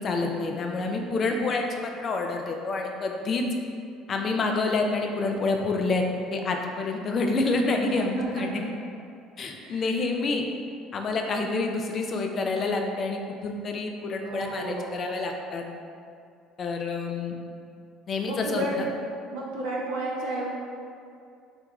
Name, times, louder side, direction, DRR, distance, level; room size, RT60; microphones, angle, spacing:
voice 1, 0.0-3.4 4.1-6.0 6.3-8.7 9.4-10.4 10.9-15.6 16.6-17.3 18.1-18.6, left 3 dB, 45° left, 3 dB, 0.4 m, -28 dB
voice 2, 7.9-8.2 9.6-10.3 14.2-15.0 18.2-18.8 19.3-20.5, right 2 dB, 75° right, -3 dB, 0.5 m, -33 dB
3.4 x 2.3 x 3.0 m, 2.4 s
hypercardioid pair, 65°, 0 cm